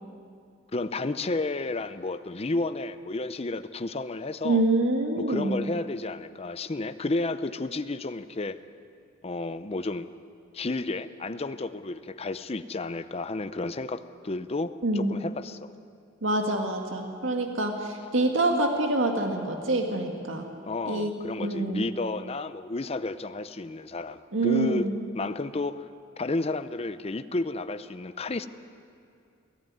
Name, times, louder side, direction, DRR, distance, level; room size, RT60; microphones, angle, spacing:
voice 1, 0.7-4.6 5.2-8.6 9.2-10.1 10.5-15.7 20.6-24.9 25.1-25.8 26.2-28.5, left 2 dB, 30° left, 11 dB, 0.6 m, -32 dB
voice 2, 4.4-5.6 14.8-15.1 16.2-20.4 20.9-21.1 21.4-21.8 24.3-24.9, right 2 dB, 70° right, 3 dB, 1.8 m, -26 dB
23.5 x 15.5 x 9.4 m, 2.5 s
head